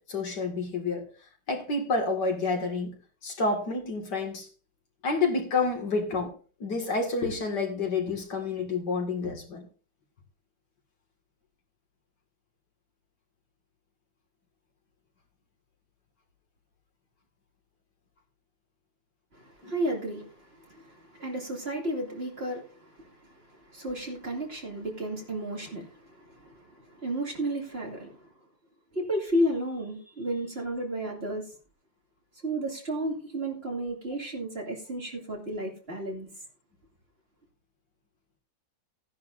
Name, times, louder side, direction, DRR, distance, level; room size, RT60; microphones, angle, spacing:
voice 1, 0.1-1.1 1.5-2.9 3.2-4.5 5.0-6.3 6.6-9.7 19.6-19.7, left 3 dB, 60° left, 2.7 m, -29 dB
voice 2, 19.3-28.3 28.9-31.5 32.4-36.3, right 1 dB, 30° right, 2.6 m, -33 dB
15.5 x 10.5 x 2.6 m
omnidirectional pair, 2.0 m